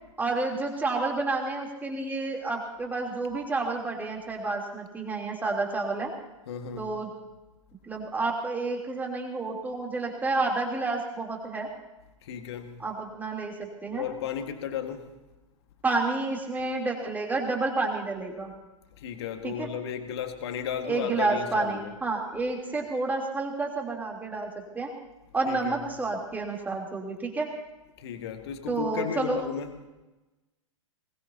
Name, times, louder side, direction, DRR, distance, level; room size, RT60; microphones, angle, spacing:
voice 1, 0.2-6.1 6.8-7.1 7.8-11.7 12.8-14.1 15.8-18.5 19.4-19.7 20.8-24.9 25.3-27.5 28.7-29.4, right 3 dB, 10° right, 0 dB, 3.3 m, -30 dB
voice 2, 6.5-6.9 12.2-12.8 13.9-15.2 19.0-21.9 25.5-25.8 28.0-29.7, left 8 dB, 50° left, 6 dB, 1.8 m, -34 dB
22.0 x 20.0 x 2.9 m, 1.1 s
figure-of-eight pair, 105°, 17 cm